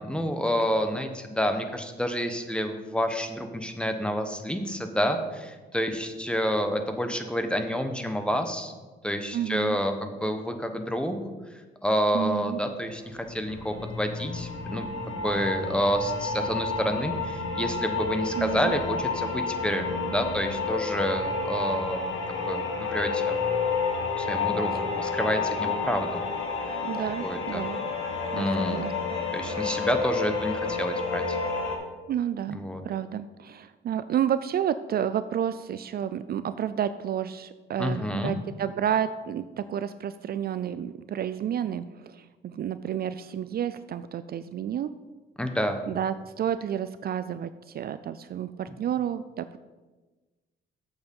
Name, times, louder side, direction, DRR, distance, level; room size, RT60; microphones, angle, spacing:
voice 1, 0.0-8.7 9.0-11.2 11.8-23.4 24.2-26.2 27.2-27.7 28.3-28.9 29.3-31.4 32.5-32.8 37.8-38.3 45.4-45.8, equal, 5° left, 6 dB, 1.1 m, -29 dB
voice 2, 9.3-9.8 12.1-12.6 18.4-18.7 24.7-24.8 26.7-27.8 28.3-28.5 28.7-28.9 32.1-44.9 45.9-49.6, right 9 dB, 50° right, 13 dB, 0.4 m, -30 dB
sound 1, 12.9-31.7, left 4 dB, 90° left, 1.7 m, -30 dB
7.7 x 6.9 x 5.4 m, 1.2 s
cardioid pair, 90°, 20 cm